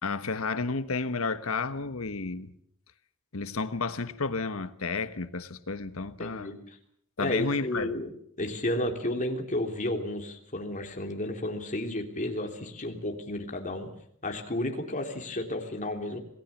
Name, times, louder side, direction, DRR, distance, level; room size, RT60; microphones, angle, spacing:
voice 1, 0.0-2.5 3.3-6.5 7.2-7.9, left 4 dB, 70° left, 1.3 m, -31 dB
voice 2, 6.2-6.8 7.2-8.1 8.4-13.9 14.2-16.2, left 1 dB, 35° left, 3.4 m, -32 dB
27.0 x 18.5 x 7.2 m
head